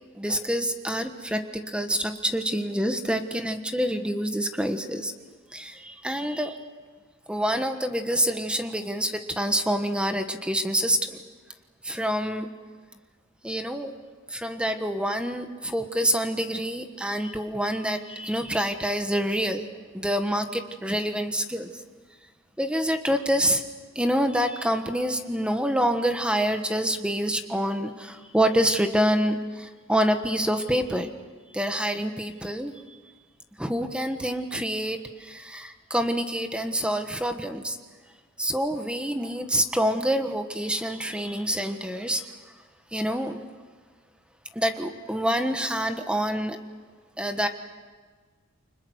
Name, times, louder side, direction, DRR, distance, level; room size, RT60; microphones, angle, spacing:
voice 1, 0.1-5.1 5.5-6.7 7.3-11.2 11.8-12.5 13.4-13.9 14.3-19.7 19.9-21.7 22.6-23.6 23.9-31.1 31.5-32.7 33.6-37.8 38.4-42.2 42.9-43.4 44.5-46.6 47.2-47.5, equal, 5° right, 7 dB, 1.4 m, -27 dB
29.5 x 25.0 x 6.5 m, 1.5 s
head